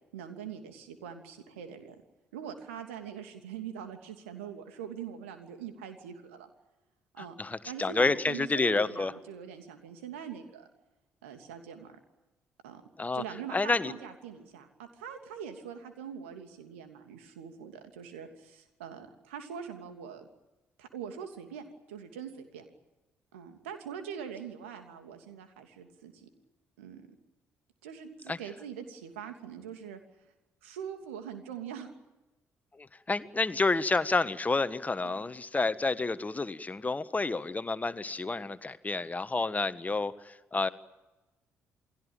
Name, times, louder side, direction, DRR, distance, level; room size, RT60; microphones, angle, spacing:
voice 1, 0.1-1.9 2.3-6.5 7.1-7.3 7.7-10.7 11.2-12.0 12.6-12.8 13.1-20.3 20.8-22.6 23.3-26.3 26.8-27.1 27.8-30.0 30.6-31.9 35.0-35.2, right 8 dB, 75° right, 6 dB, 2.9 m, -43 dB
voice 2, 7.2-9.1 13.0-13.2 13.5-13.9 28.3-28.4 32.7-40.7, left 3 dB, 25° left, 14 dB, 1.4 m, -29 dB
29.0 x 20.0 x 9.0 m, 1.1 s
figure-of-eight pair, 45°, 7 cm